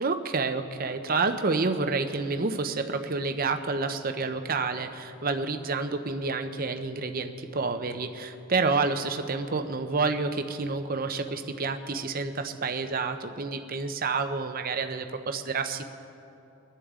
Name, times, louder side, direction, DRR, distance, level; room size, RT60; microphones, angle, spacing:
voice 1, 0.0-15.9, right 4 dB, 40° right, 7 dB, 0.7 m, -29 dB
23.5 x 11.0 x 3.7 m, 2.8 s
head